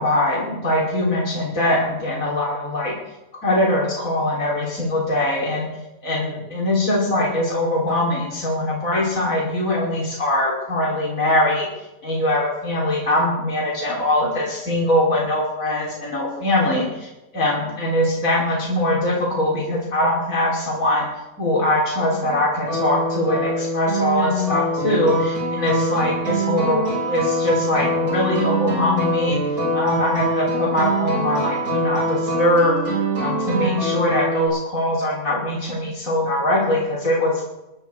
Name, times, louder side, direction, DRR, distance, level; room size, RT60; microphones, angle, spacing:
voice 1, 0.0-2.9 3.4-5.7 6.0-11.7 12.0-17.1 17.3-21.0 21.4-29.4 29.7-32.8 33.2-37.4, left 1 dB, 65° left, -5 dB, 3.8 m, -22 dB
sound 1, 22.2-34.5, equal, 80° right, 8.3 m, -24 dB
21.5 x 11.0 x 4.6 m, 0.96 s
omnidirectional pair, 1.6 m